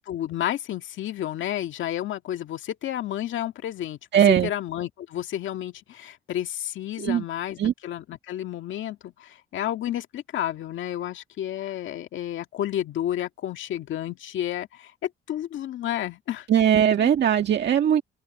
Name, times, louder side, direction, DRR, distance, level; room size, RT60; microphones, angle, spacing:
voice 1, 0.0-4.0 4.4-16.5 17.0-17.1, left 12 dB, 75° left, 2.0 m, -31 dB
voice 2, 4.1-4.5 7.0-7.2 7.6-7.7 16.5-18.0, right 9 dB, 60° right, 1.8 m, -19 dB
open air
cardioid pair, 90°, 20 cm